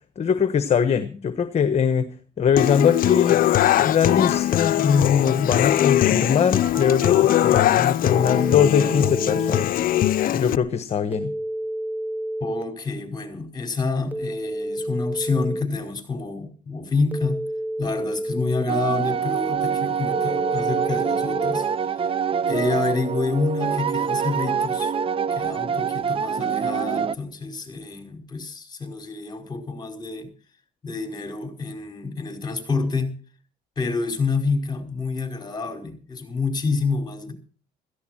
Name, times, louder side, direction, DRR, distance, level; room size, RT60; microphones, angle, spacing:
voice 1, 0.2-2.1 2.4-3.4 3.8-9.8 10.3-11.3, left 7 dB, 40° left, 11 dB, 1.2 m, -21 dB
Human voice / Acoustic guitar, 2.6-10.5, left 13 dB, 55° left, 0.6 m, -21 dB
Telephone, 6.6-7.6 8.1-9.6 11.1-12.6 14.1-15.6 17.1-18.6 20.1-21.6, right 1 dB, 10° right, 1.2 m, -30 dB
voice 2, 12.4-17.5 17.8-22.0 22.5-24.9 25.3-30.3 30.8-33.1 33.7-37.3, left 4 dB, 25° left, 5 dB, 5.1 m, -28 dB
sound 1, 18.7-27.1, right 7 dB, 35° right, 0.6 m, -25 dB
16.5 x 14.5 x 4.4 m, 0.40 s
cardioid pair, 110°, 17 cm